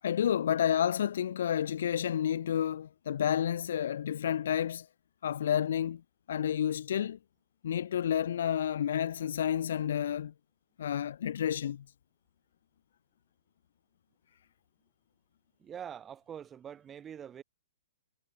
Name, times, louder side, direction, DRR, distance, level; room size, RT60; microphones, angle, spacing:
voice 1, 0.0-4.9 5.2-6.0 6.3-7.2 7.6-10.3 10.8-11.8, left 9 dB, 50° left, 0.4 m, -30 dB
voice 2, 15.6-17.4, right 8 dB, 10° right, 4.0 m, -44 dB
hypercardioid pair, 175°, 0 cm